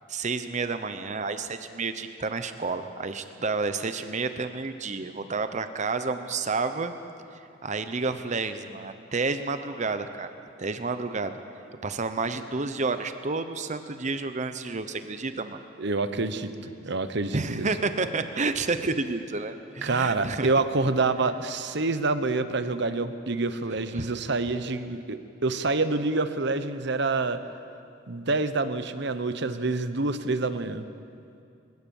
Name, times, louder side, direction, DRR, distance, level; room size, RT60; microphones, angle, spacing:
voice 1, 0.1-6.9 7.6-10.3 10.6-11.4 11.8-15.6 17.3-20.5 23.9-24.1, right 3 dB, 40° right, 9 dB, 0.9 m, -30 dB
voice 2, 15.8-17.7 19.8-27.4 28.1-30.8, right 3 dB, 60° right, 10 dB, 1.1 m, -27 dB
22.0 x 19.0 x 7.2 m, 2.5 s
head